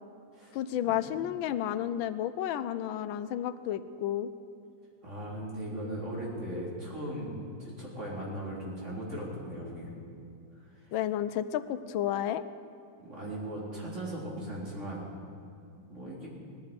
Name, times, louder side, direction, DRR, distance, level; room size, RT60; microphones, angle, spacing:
voice 1, 0.5-4.3 10.9-12.4, left 11 dB, 85° left, 12 dB, 1.4 m, -31 dB
voice 2, 5.0-9.9 13.0-15.0 15.9-16.3, right 1 dB, 35° right, -5 dB, 3.8 m, -38 dB
18.5 x 13.0 x 5.2 m, 2.6 s
omnidirectional pair, 2.1 m